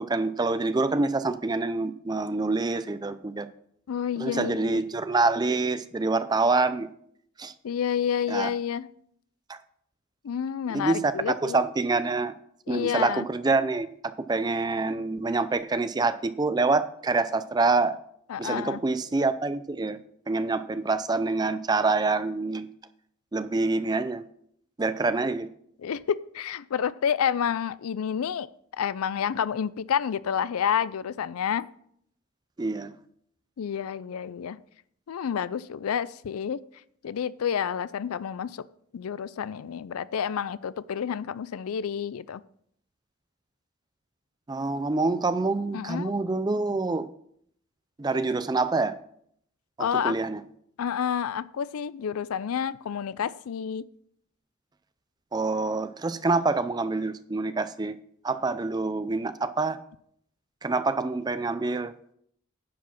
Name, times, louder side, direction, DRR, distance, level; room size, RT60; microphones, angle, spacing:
voice 1, 0.0-3.5 4.2-6.9 7.4-7.5 8.3-8.5 9.5-9.6 10.7-12.3 12.7-18.0 18.4-20.0 20.3-22.7 23.3-24.2 24.8-25.5 32.6-32.9 44.5-47.1 48.0-49.0 49.8-50.4 55.3-58.0 58.2-59.8 60.6-61.9, right 3 dB, 20° right, 13 dB, 0.4 m, -26 dB
voice 2, 3.9-4.8 7.6-8.9 10.2-11.6 12.7-13.3 18.3-18.8 25.8-28.5 28.7-31.7 33.6-34.6 35.1-36.6 37.0-38.7 38.9-42.4 45.7-46.1 49.8-50.2 50.8-53.9, left 8 dB, 80° left, 18 dB, 0.4 m, -29 dB
10.0 x 4.8 x 5.9 m, 0.68 s
head